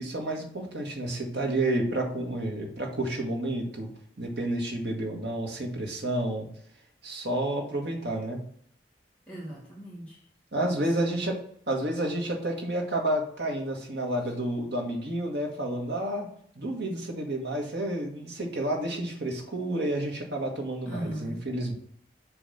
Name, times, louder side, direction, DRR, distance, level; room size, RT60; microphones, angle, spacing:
voice 1, 0.0-3.9 4.2-6.5 7.0-8.4 10.5-11.4 11.7-16.3 16.6-21.7, right 1 dB, 70° right, 1 dB, 1.7 m, -30 dB
voice 2, 9.3-10.3 10.7-11.4 14.2-14.3 20.9-21.5, right 1 dB, 5° left, -7 dB, 2.1 m, -39 dB
7.0 x 3.5 x 5.7 m, 0.62 s
head